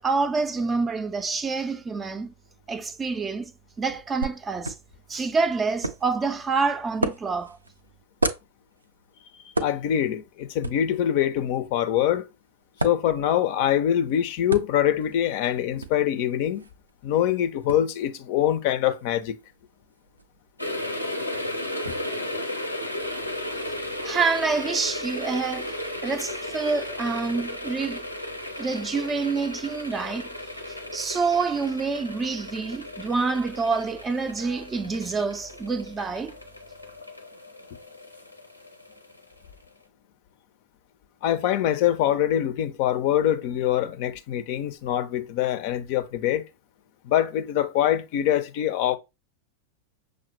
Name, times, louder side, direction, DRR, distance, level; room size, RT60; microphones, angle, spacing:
voice 1, 0.0-2.3 2.7-3.5 3.8-4.8 5.1-7.6 24.0-25.7 26.0-28.0 28.6-30.3 30.6-36.4, right 4 dB, 20° right, 0.4 m, -27 dB
sound 1, 4.2-21.9, right 2 dB, 80° right, 0.4 m, -37 dB
voice 2, 9.6-12.2 12.8-16.6 17.0-19.4 21.9-22.0 41.2-46.4 47.0-49.0, left 11 dB, 45° left, 0.5 m, -24 dB
sound 2, 20.6-39.2 39.5-39.6, left 1 dB, 90° left, 0.7 m, -35 dB
6.2 x 2.1 x 3.0 m
figure-of-eight pair, 90°, 0 cm